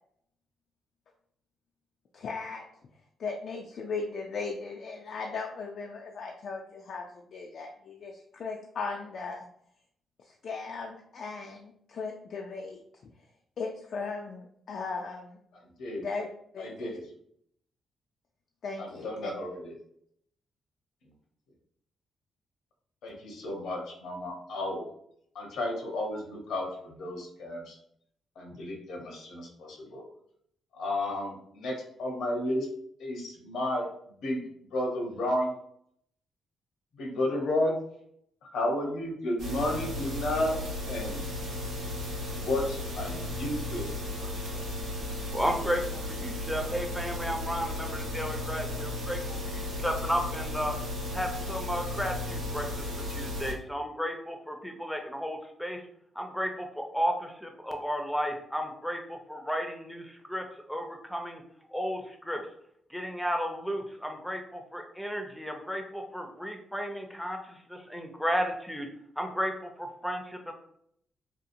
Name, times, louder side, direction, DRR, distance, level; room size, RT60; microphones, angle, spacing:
voice 1, 2.1-2.6 3.2-9.5 10.3-12.8 13.6-15.4 16.0-16.3 16.5-16.9 18.6-19.3, left 4 dB, 65° left, 1 dB, 0.3 m, -37 dB
voice 2, 15.5-16.0 16.6-17.0 18.8-19.7 23.0-24.8 25.3-27.8 28.4-30.1 30.7-32.7 33.0-35.5 36.9-37.8 38.4-40.6 40.9-41.3 42.3-44.7, left 1 dB, 85° left, 0 dB, 0.8 m, -32 dB
sound 1, 39.4-53.5, left 2 dB, 90° right, 0.8 m, -35 dB
voice 3, 45.3-49.2 49.5-50.8 51.1-52.7 53.1-55.8 56.1-61.4 61.7-62.4 62.9-68.9 69.2-70.5, equal, ahead, 3 dB, 0.5 m, -33 dB
2.8 x 2.3 x 2.5 m, 0.69 s
cardioid pair, 75°, 0 cm